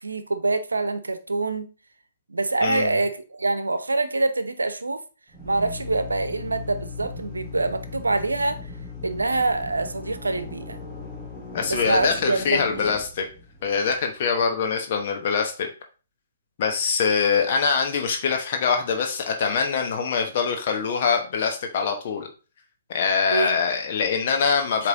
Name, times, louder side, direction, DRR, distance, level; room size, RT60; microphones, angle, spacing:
voice 1, 0.0-1.7 2.3-5.0 5.4-8.6 9.0-10.8 11.7-12.9 23.3-23.6, right 3 dB, 80° right, 0.8 m, -25 dB
voice 2, 2.6-2.9 11.5-13.3 13.6-15.7 16.6-22.3 22.9-24.9, left 5 dB, 50° left, 1.0 m, -24 dB
Drill, 5.3-13.9, left 3 dB, 10° left, 2.5 m, -38 dB
8.1 x 3.2 x 3.9 m
figure-of-eight pair, 125°, 0 cm